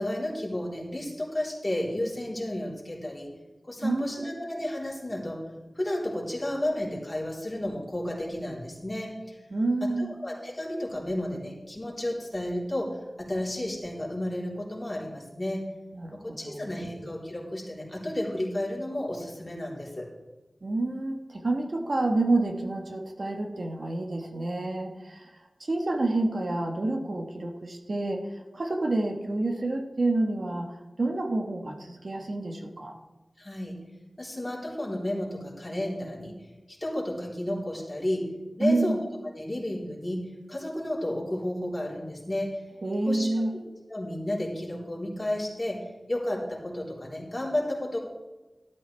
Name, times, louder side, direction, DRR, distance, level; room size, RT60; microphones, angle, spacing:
voice 1, 0.0-3.3 3.6-5.4 5.8-9.4 9.8-15.6 16.2-20.1 33.4-33.8 34.2-36.4 36.8-38.3 38.6-39.0 39.2-40.2 40.5-42.6 43.0-43.3 43.9-48.0, left 1 dB, 25° left, -4 dB, 3.8 m, -32 dB
voice 2, 3.8-4.3 9.5-10.1 15.9-16.9 20.6-25.3 25.6-33.0 38.6-39.0 42.8-43.6, right 2 dB, 65° right, 3 dB, 1.4 m, -28 dB
12.5 x 12.0 x 3.4 m, 1.1 s
wide cardioid pair, 60°, 0 cm